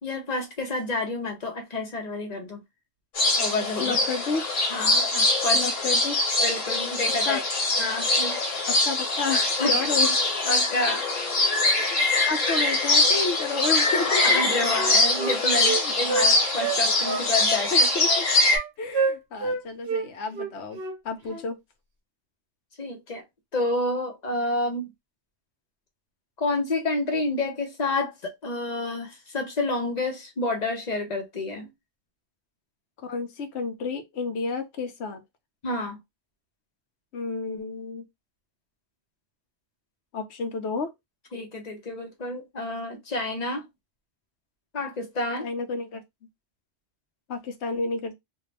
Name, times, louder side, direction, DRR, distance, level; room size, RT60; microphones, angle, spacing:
voice 1, 0.0-2.6 3.4-4.0 4.7-5.6 6.4-7.4 7.8-8.4 9.6-10.1 10.4-11.1 11.4-11.7 14.2-17.7 22.8-23.2 23.5-24.9 26.4-31.7 35.6-36.0 41.3-43.6 44.7-45.5, left 2 dB, 40° left, 0.9 m, -29 dB
sound 1, 3.1-18.6, left 2 dB, 90° left, 1.5 m, -23 dB
voice 2, 3.8-4.4 5.5-6.2 7.2-7.4 8.7-10.1 11.7-14.5 15.5-15.9 17.7-18.2 18.8-20.8 21.0-21.6 33.0-35.2 37.1-38.0 40.1-40.9 45.4-46.0 47.3-48.1, left 4 dB, 65° left, 1.0 m, -31 dB
Wind instrument woodwind instrument, 14.3-16.3 16.6-17.7 18.1-18.7 18.9-19.6 19.9-20.1 20.3-21.0 21.2-21.5, right 4 dB, 55° right, 1.1 m, -28 dB
2.6 x 2.5 x 3.2 m
omnidirectional pair, 1.3 m